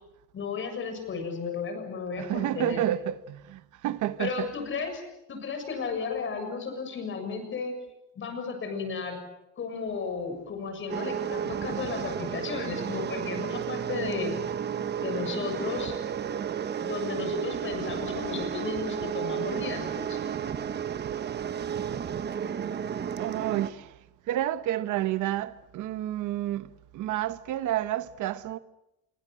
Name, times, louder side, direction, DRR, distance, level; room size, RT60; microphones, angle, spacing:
voice 1, 0.3-2.8 4.2-7.7 8.2-9.2 9.6-14.4 15.0-15.9 16.8-20.2, left 5 dB, 40° left, 7.1 m, -34 dB
voice 2, 2.2-4.5 23.2-24.0 24.3-28.6, right 13 dB, 70° right, 1.2 m, -30 dB
sound 1, 10.9-23.7, right 8 dB, 30° right, 1.1 m, -32 dB
27.0 x 23.5 x 7.7 m
cardioid pair, 160°, 31 cm